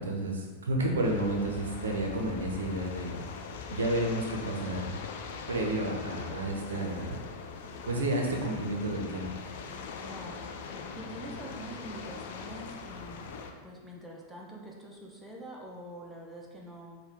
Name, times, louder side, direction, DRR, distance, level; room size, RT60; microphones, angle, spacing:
voice 1, 0.0-3.2 3.7-5.0 5.5-7.2 7.9-9.3, right 1 dB, 70° right, 0 dB, 0.5 m, -31 dB
sound 1, 1.0-13.5, left 5 dB, 55° left, 0.3 m, -42 dB
voice 2, 10.0-10.5 11.0-13.3 13.6-17.0, right 1 dB, 5° right, -3 dB, 0.7 m, -45 dB
4.4 x 2.2 x 3.5 m, 1.4 s
figure-of-eight pair, 90°, 0 cm